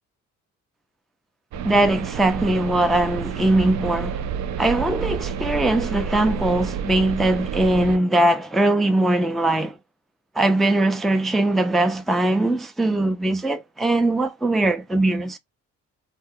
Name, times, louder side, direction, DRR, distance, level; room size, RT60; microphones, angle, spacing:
sound 1, 1.5-8.0, right 7 dB, 65° right, 0.4 m, -29 dB
voice 1, 1.6-4.2 4.6-9.8 10.4-15.4, right 1 dB, ahead, 0.3 m, -21 dB
2.7 x 2.2 x 3.6 m
cardioid pair, 90°, 30 cm